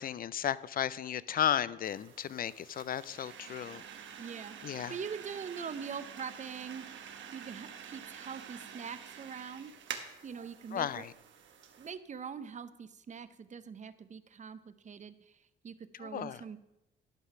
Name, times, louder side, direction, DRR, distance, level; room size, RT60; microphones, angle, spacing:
voice 1, 0.0-3.8 4.6-5.0 10.7-11.1 16.0-16.4, left 10 dB, 45° left, 18 dB, 0.4 m, -34 dB
sound 1, 1.8-11.9, right 8 dB, 70° right, 1.1 m, -48 dB
voice 2, 4.2-6.8 7.3-9.7 10.2-11.1 11.8-15.4 15.6-16.6, right 6 dB, 35° right, 13 dB, 0.6 m, -43 dB
11.5 x 5.6 x 5.8 m, 0.91 s
cardioid pair, 90°, 20 cm